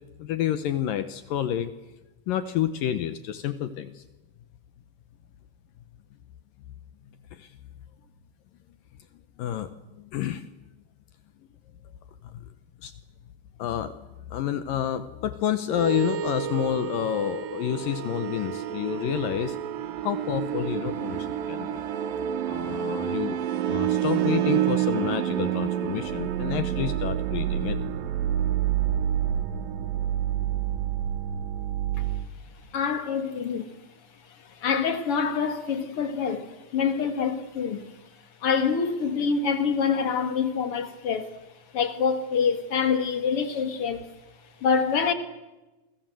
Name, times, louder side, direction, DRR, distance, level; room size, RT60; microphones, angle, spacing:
voice 1, 0.2-1.7 2.3-4.0 7.3-7.5 9.4-10.5 12.3-12.4 12.8-12.9 13.6-13.9 14.3-19.6 20.0-21.8 22.5-23.4 23.7-27.8, left 11 dB, 70° left, 2.3 m, -29 dB
sound 1, 15.7-32.3, right 10 dB, 70° right, 2.6 m, -28 dB
voice 2, 32.7-33.7 34.5-37.9 38.4-41.3 41.7-44.0 44.6-45.1, left 6 dB, 45° left, 2.2 m, -26 dB
28.5 x 23.5 x 7.7 m
omnidirectional pair, 4.7 m